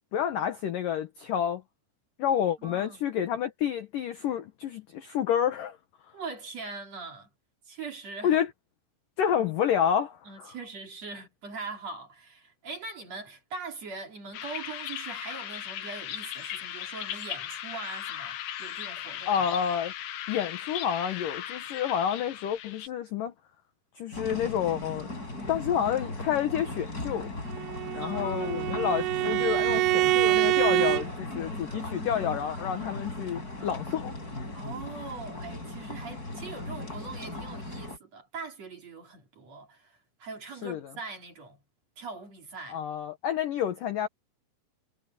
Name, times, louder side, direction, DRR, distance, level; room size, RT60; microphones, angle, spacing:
voice 1, 0.1-1.6 2.2-5.8 8.2-8.5 9.2-10.5 19.3-19.9 20.3-23.3 24.0-25.1 25.5-27.3 27.9-34.1 40.6-40.8 42.7-44.1, left 9 dB, 80° left, 1.9 m, -29 dB
voice 2, 2.6-3.0 6.1-7.3 7.7-8.4 9.4-9.6 10.3-19.5 28.0-29.1 34.5-41.6 42.0-42.8, right 4 dB, 35° right, 3.7 m, -42 dB
sound 1, 14.3-22.9, left 11 dB, 65° left, 3.2 m, -38 dB
sound 2, 24.1-38.0, left 2 dB, 20° left, 5.6 m, -38 dB
Bowed string instrument, 27.5-31.1, right 17 dB, 85° right, 3.4 m, -25 dB
omnidirectional pair, 5.8 m